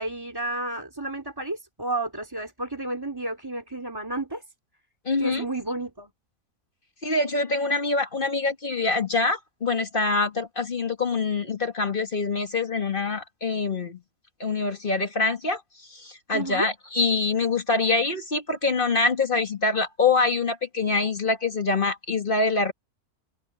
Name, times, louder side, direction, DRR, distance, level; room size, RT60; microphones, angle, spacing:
voice 1, 0.0-4.4 5.2-6.1 16.3-16.7, right 2 dB, 15° right, 3.1 m, -31 dB
voice 2, 5.0-5.4 7.0-14.0 14.4-15.6 15.9-22.7, left 3 dB, 40° left, 1.8 m, -25 dB
omnidirectional pair, 1.5 m